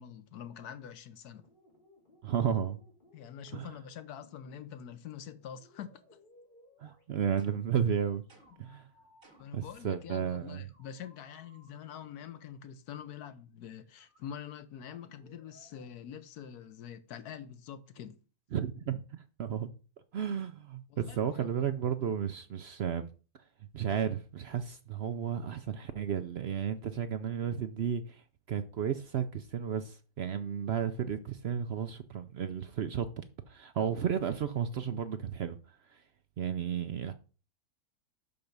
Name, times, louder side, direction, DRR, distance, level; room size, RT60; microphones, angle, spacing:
voice 1, 0.0-1.4 3.1-6.0 9.4-18.2 20.9-21.4, left 9 dB, 90° left, 1.4 m, -45 dB
sound 1, 1.3-7.5 8.2-10.0 10.6-12.4 13.1-13.3 13.6-15.9, left 1 dB, 30° left, 2.5 m, -63 dB
voice 2, 2.2-2.8 3.5-3.7 6.8-8.2 8.6-8.9 9.5-10.7 18.5-19.7 20.1-23.1 23.7-35.6 35.9-36.0 36.4-37.1, right 8 dB, 60° right, 0.7 m, -33 dB
sound 2, 7.4-7.8 8.3-8.7 9.2-9.6, right 2 dB, 40° right, 2.1 m, -61 dB
5.8 x 5.4 x 6.6 m
omnidirectional pair, 1.6 m